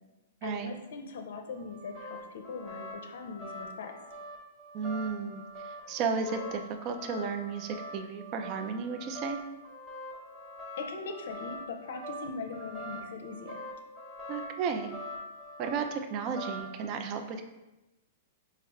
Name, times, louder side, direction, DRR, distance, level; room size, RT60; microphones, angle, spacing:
voice 1, 0.4-4.0 10.8-13.7, left 4 dB, 75° left, 5 dB, 0.5 m, -40 dB
sound 1, 1.5-16.9, equal, 5° right, 0.7 m, -44 dB
voice 2, 4.7-9.4 14.3-14.9 15.6-17.4, right 5 dB, 40° right, 6 dB, 0.3 m, -34 dB
4.3 x 2.3 x 3.4 m, 1.0 s
hypercardioid pair, 135°, 0 cm